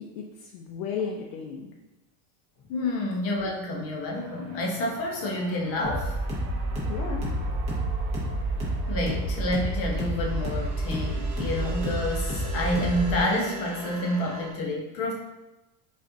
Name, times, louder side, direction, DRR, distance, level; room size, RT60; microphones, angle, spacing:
voice 1, 0.0-1.7 6.9-7.3, left 6 dB, 90° left, 1 dB, 0.6 m, -34 dB
voice 2, 2.7-6.1 8.9-15.1, left 1 dB, 35° left, -1 dB, 0.7 m, -29 dB
sound 1, 4.1-14.5, right 4 dB, 70° right, 0.9 m, -39 dB
sound 2, 5.8-13.2, right 1 dB, 15° right, 0.7 m, -30 dB
5.2 x 2.5 x 2.6 m, 1.0 s
cardioid pair, 170°, 41 cm